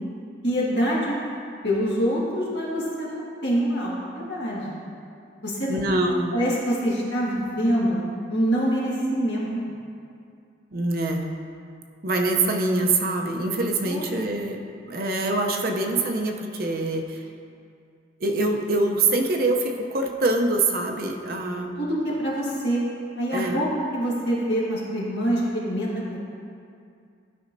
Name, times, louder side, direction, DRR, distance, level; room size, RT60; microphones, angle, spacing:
voice 1, 0.4-1.1 1.6-4.8 5.4-5.8 6.3-8.0 8.3-9.5 13.8-14.0 21.8-22.8 23.2-23.7 23.9-26.2, equal, 60° left, -6 dB, 1.7 m, -25 dB
voice 2, 5.7-6.3 10.7-11.3 12.0-17.2 18.2-21.7 23.3-23.6, right 2 dB, 50° right, 2 dB, 0.6 m, -24 dB
12.0 x 5.3 x 2.6 m, 2.4 s
head